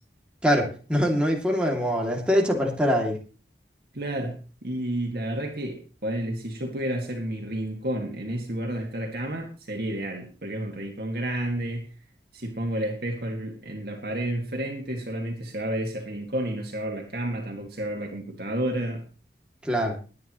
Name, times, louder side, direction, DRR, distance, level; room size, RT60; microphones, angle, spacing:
voice 1, 0.4-3.2 19.6-20.0, equal, 5° right, -1 dB, 2.7 m, -23 dB
voice 2, 3.9-11.9 12.3-19.0, right 1 dB, 60° right, 1 dB, 2.2 m, -31 dB
21.0 x 9.7 x 3.2 m, 0.35 s
head